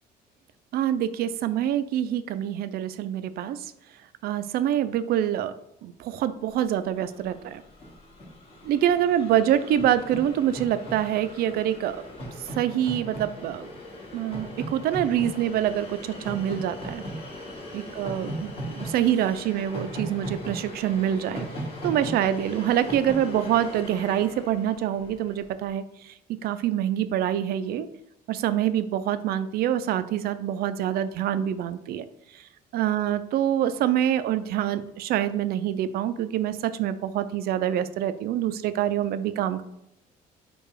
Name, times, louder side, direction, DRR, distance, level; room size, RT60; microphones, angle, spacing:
voice 1, 0.7-3.7 4.2-5.5 5.8-7.6 8.6-12.0 12.6-13.7 14.1-17.0 17.7-21.5 21.8-26.1 26.4-27.9 28.3-32.1 32.3-39.6, right 11 dB, 65° right, 12 dB, 0.4 m, -26 dB
Train, 6.8-6.9 7.1-25.5, equal, 35° left, 1.5 m, -38 dB
4.6 x 2.3 x 4.7 m, 0.83 s
cardioid pair, 110°, 17 cm